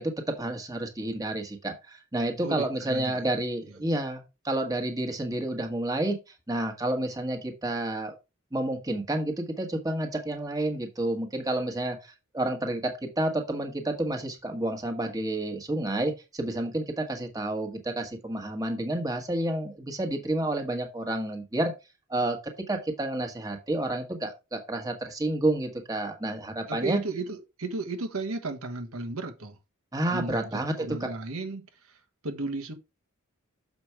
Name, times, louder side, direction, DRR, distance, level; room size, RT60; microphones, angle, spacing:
voice 1, 0.0-6.2 6.5-8.1 8.5-21.7 22.1-22.4 22.7-27.0 29.9-31.1, right 1 dB, 15° right, 1.5 m, -30 dB
voice 2, 2.4-3.2 26.7-29.6 30.1-31.6 32.2-32.7, right 3 dB, 80° right, 1.4 m, -34 dB
6.9 x 5.2 x 4.6 m
head